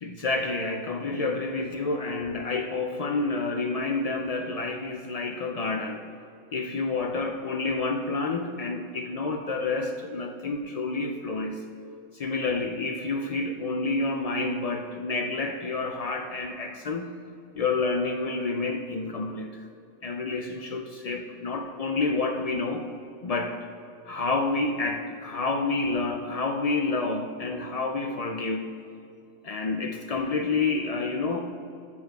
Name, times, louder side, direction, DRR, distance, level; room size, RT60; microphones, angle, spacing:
voice 1, 0.0-6.0 6.5-11.6 12.1-17.1 17.5-19.6 20.0-22.8 23.2-23.6 24.1-28.7 29.4-31.4, left 3 dB, 80° left, 4 dB, 0.3 m, -29 dB
8.4 x 6.8 x 4.6 m, 2.4 s
omnidirectional pair, 1.3 m